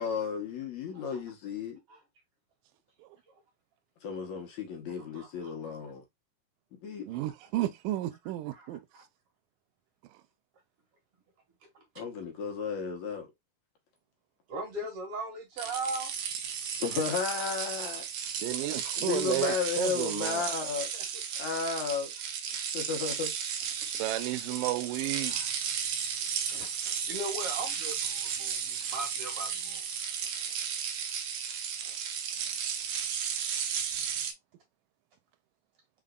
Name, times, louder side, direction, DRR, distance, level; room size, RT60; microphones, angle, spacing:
voice 1, 0.0-1.8 4.0-6.0 6.8-7.1 12.0-13.3 16.8-18.1 19.0-20.9 21.3-22.1 22.7-23.3, left 6 dB, 70° left, 2.2 m, -33 dB
voice 2, 5.0-5.8 7.1-7.3 8.5-9.0 11.7-11.8 14.5-16.2 20.7-21.0 23.8-23.9 25.2-25.5 26.4-30.6 31.8-32.0, right 2 dB, 50° right, 2.3 m, -40 dB
voice 3, 7.1-8.8 18.4-20.4 23.9-25.3, right 15 dB, 90° right, 2.2 m, -32 dB
sound 1, 15.6-34.3, right 7 dB, 70° right, 1.6 m, -34 dB
5.1 x 4.0 x 2.2 m
omnidirectional pair, 3.7 m